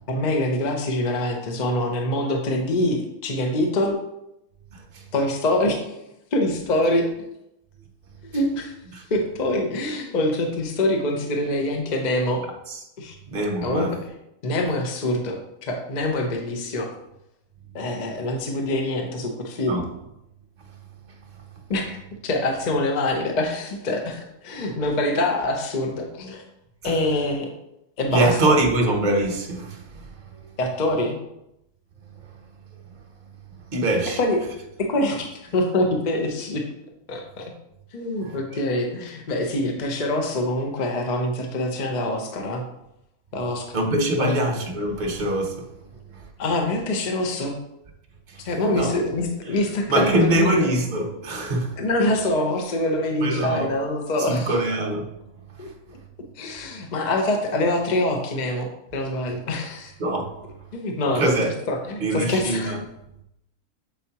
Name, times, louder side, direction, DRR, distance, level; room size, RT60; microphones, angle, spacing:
voice 1, 0.1-4.0 5.1-6.0 6.3-7.1 8.2-8.8 9.1-12.4 13.0-13.1 13.6-13.9 14.4-16.9 17.7-19.8 21.7-26.4 26.8-27.5 28.0-28.3 30.6-31.2 34.2-34.4 34.8-36.6 37.1-37.5 37.9-42.6 43.3-43.7 44.2-44.3 46.4-47.6 48.4-50.6 51.8-54.5 55.6-56.0 56.4-59.9 60.7-61.2 61.7-62.7, left 1 dB, 40° left, 0.7 m, -25 dB
voice 2, 4.7-5.1 8.9-9.1 12.7-12.8 13.3-14.0 19.7-19.9 20.7-20.8 21.1-21.4 26.8-27.0 28.1-30.5 32.1-32.4 32.9-33.0 33.5-34.2 38.2-38.4 43.7-45.8 46.1-46.3 48.3-48.9 49.5-49.6 49.9-51.8 53.2-53.8 54.2-55.2 55.5-56.0 60.0-60.4 61.1-61.5 62.0-62.8, right 1 dB, 40° right, 0.9 m, -24 dB
7.3 x 4.5 x 2.8 m
omnidirectional pair, 1.4 m